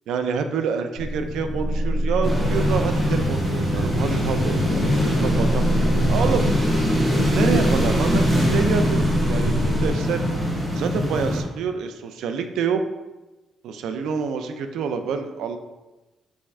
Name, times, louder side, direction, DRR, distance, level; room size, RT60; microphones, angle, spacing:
voice 1, 0.1-6.6 7.3-10.2 10.7-12.8 13.6-15.6, right 6 dB, 85° right, 7 dB, 0.4 m, -27 dB
sound 1, 1.0-9.9, equal, 30° left, 0.4 m, -27 dB
sound 2, 2.2-11.4, equal, 10° right, 0.9 m, -22 dB
4.2 x 3.5 x 3.2 m, 1.1 s
cardioid pair, 125°, 0 cm